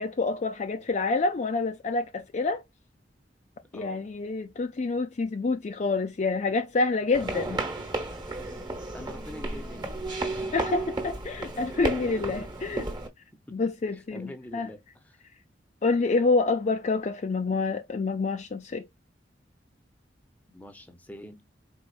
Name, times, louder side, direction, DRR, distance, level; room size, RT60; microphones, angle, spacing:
voice 1, 0.0-2.6 3.7-7.6 10.5-12.8 13.5-14.7 15.8-18.9, left 3 dB, 40° left, 0.4 m, -27 dB
voice 2, 3.7-4.1 7.2-7.4 8.9-10.0 12.3-12.5 13.5-15.2 20.5-21.5, left 1 dB, 10° left, 0.7 m, -45 dB
sound 1, 7.1-13.1, right 2 dB, 25° right, 1.2 m, -33 dB
4.6 x 3.6 x 2.4 m
head